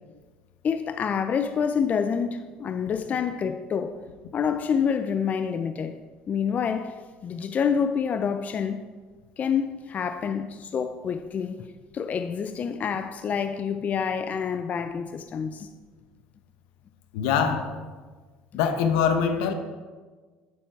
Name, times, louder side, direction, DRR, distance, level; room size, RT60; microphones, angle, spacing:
voice 1, 0.6-4.0 4.3-6.0 6.3-8.9 9.4-11.7 11.9-15.7, left 7 dB, 40° left, 0.5 m, -27 dB
voice 2, 17.1-17.7 18.5-19.5, left 7 dB, 80° left, 0.9 m, -23 dB
9.0 x 7.1 x 4.6 m
hypercardioid pair, 75°, 4 cm